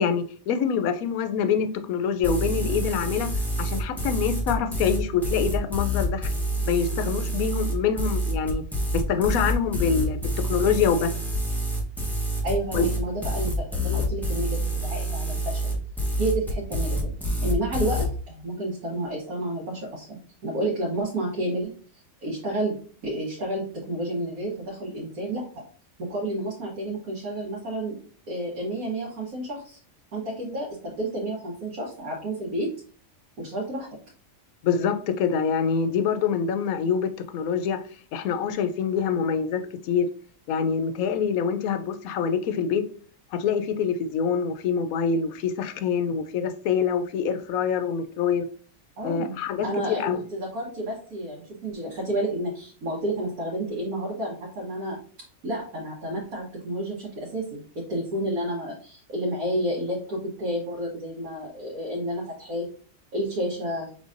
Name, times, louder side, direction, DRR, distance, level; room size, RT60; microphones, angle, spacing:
voice 1, 0.0-3.3 3.6-6.3 6.6-8.6 8.9-11.1 12.7-12.9 34.6-37.8 38.1-40.1 40.5-42.8 43.3-48.5 49.0-50.2, left 6 dB, 80° left, 1.0 m, -25 dB
sound 1, 2.2-18.1, right 1 dB, ahead, 0.7 m, -27 dB
voice 2, 12.4-15.8 16.2-21.7 22.2-22.8 23.0-25.6 26.0-27.9 28.3-29.8 30.1-32.7 33.4-33.9 49.0-49.3 49.6-55.0 55.4-62.7 63.1-63.9, right 1 dB, 85° right, 1.6 m, -30 dB
5.4 x 3.8 x 2.5 m
omnidirectional pair, 1.5 m